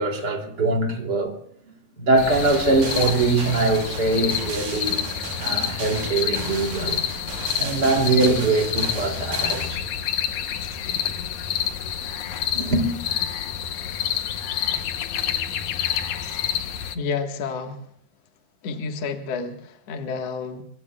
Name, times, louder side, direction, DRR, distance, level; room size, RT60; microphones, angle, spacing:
voice 1, 0.0-1.3 2.0-5.0 5.3-7.0 7.6-9.9 12.5-12.9, right 3 dB, 25° right, 3.0 m, -22 dB
sound 1, 2.2-17.0, left 9 dB, 75° left, 1.7 m, -28 dB
sound 2, 2.3-9.7, right 4 dB, 75° right, 5.3 m, -35 dB
voice 2, 16.9-17.8 18.6-20.6, left 5 dB, 50° left, 2.1 m, -30 dB
25.0 x 24.5 x 2.4 m
omnidirectional pair, 4.7 m